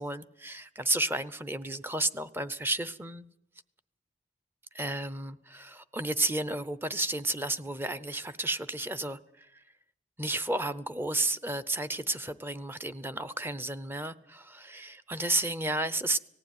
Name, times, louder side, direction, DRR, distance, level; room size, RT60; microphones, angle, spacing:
voice 1, 0.0-3.3 4.7-9.6 10.2-16.2, right 2 dB, 10° right, 0.7 m, -32 dB
19.0 x 15.0 x 9.3 m
head